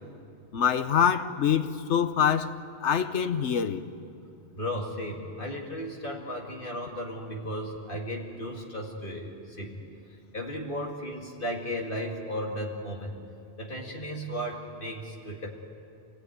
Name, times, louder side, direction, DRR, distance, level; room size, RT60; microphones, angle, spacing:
voice 1, 0.5-2.6 2.8-3.8, left 8 dB, 80° left, 1.2 m, -25 dB
voice 2, 4.6-9.8 10.3-13.2 13.6-15.5, equal, 50° left, 2.2 m, -35 dB
27.5 x 17.5 x 9.4 m
omnidirectional pair, 1.2 m